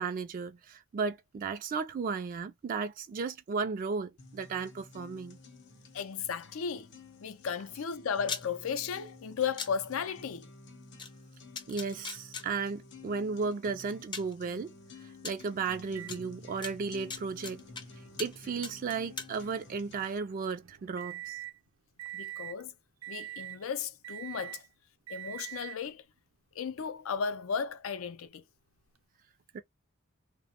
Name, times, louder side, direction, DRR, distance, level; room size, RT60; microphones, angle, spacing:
voice 1, 0.0-5.4 11.7-14.7 15.0-17.6 18.2-21.4 29.5-29.6, right 5 dB, 45° right, 0.3 m, -35 dB
sound 1, 4.2-20.2, left 3 dB, 60° left, 0.7 m, -52 dB
voice 2, 5.9-6.9 7.2-10.5 22.1-22.7 23.1-24.6 25.1-26.0 26.5-28.4, left 6 dB, 90° left, 0.4 m, -35 dB
sound 2, 8.3-8.4 9.6-9.7 11.0-11.1 11.6-12.4 13.5-13.6 14.1-14.3 15.2-15.3 16.1-16.2 16.6-17.8 18.2-18.4 18.6-19.3, left 5 dB, 25° left, 0.4 m, -38 dB
Microwave oven, 15.9-21.6 22.0-22.6 23.0-23.6 24.0-24.7 25.1-25.9 26.8-26.9 28.9-29.0, right 13 dB, 80° right, 0.6 m, -46 dB
2.8 x 2.1 x 2.8 m
head